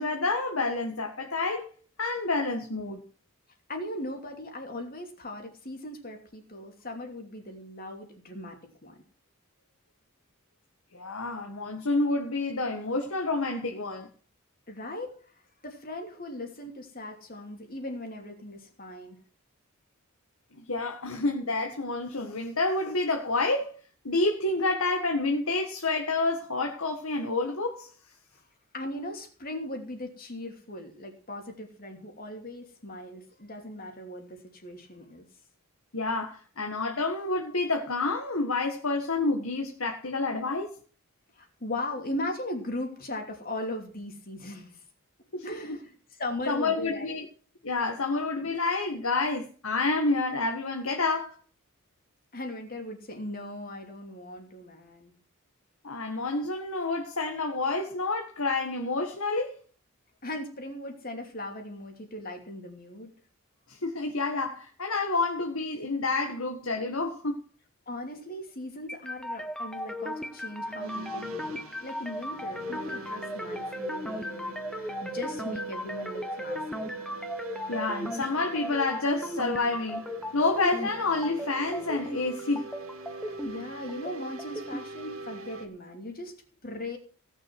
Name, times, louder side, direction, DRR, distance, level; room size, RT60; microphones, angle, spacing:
voice 1, 0.0-1.7 2.0-3.0 10.9-14.1 20.7-23.7 24.0-27.9 35.9-40.7 45.3-45.8 46.5-47.2 47.6-51.4 55.8-59.6 63.7-67.4 77.7-80.0 80.3-82.7, left 3 dB, 75° left, 1.8 m, -29 dB
voice 2, 3.7-9.0 14.7-15.2 15.6-19.2 28.7-35.3 41.4-44.8 45.4-45.9 46.2-47.1 52.3-55.1 60.2-63.1 67.9-76.9 83.2-86.4 86.6-87.0, left 1 dB, 45° left, 2.9 m, -38 dB
sound 1, 68.9-84.9, left 1 dB, 5° left, 0.8 m, -37 dB
sound 2, 70.6-85.7, right 3 dB, 80° right, 2.0 m, -43 dB
17.5 x 6.7 x 6.1 m
head